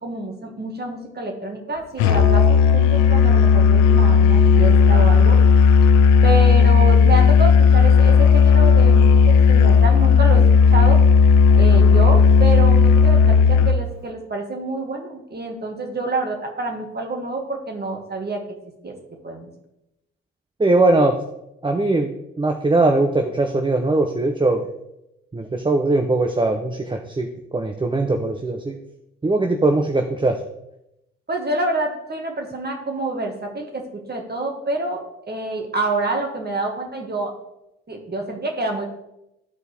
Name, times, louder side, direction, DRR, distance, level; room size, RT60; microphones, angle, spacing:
voice 1, 0.0-5.4 6.2-11.0 11.6-18.4 18.8-18.9 19.2-19.5 31.3-37.3 37.9-38.8, right 2 dB, 35° right, 2 dB, 1.9 m, -27 dB
Musical instrument, 2.0-13.8, left 6 dB, 75° left, 0.5 m, -13 dB
voice 2, 20.6-21.2 21.6-24.7 25.3-28.8 29.2-30.4, right 2 dB, 15° right, 5 dB, 0.7 m, -20 dB
12.0 x 4.5 x 3.4 m, 0.86 s
hypercardioid pair, 45°, 30 cm